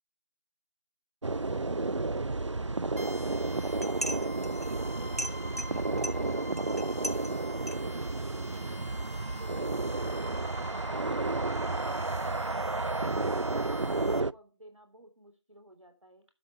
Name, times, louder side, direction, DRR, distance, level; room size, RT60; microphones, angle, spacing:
sound 1, 1.2-14.3, right 3 dB, 70° right, 0.5 m, -32 dB
sound 2, 3.0-14.2, left 1 dB, 30° right, 0.9 m, -46 dB
sound 3, 3.5-8.8, equal, 30° left, 0.8 m, -41 dB
voice 1, 4.7-9.0 10.7-16.3, right 1 dB, 90° right, 6 dB, 3.4 m, -53 dB
12.0 x 8.4 x 4.5 m, 0.29 s
figure-of-eight pair, 175°, 16 cm